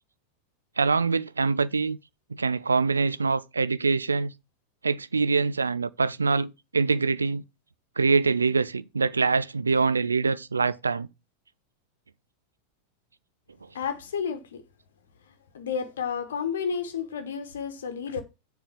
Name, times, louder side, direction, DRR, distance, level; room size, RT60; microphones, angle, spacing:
voice 1, 0.8-2.0 2.3-4.3 4.8-7.4 8.0-11.1, right 4 dB, 75° right, 0.4 m, -24 dB
voice 2, 13.7-14.6 15.5-18.2, left 6 dB, 60° left, 1.1 m, -31 dB
7.1 x 4.1 x 6.6 m
figure-of-eight pair, 90°, 0 cm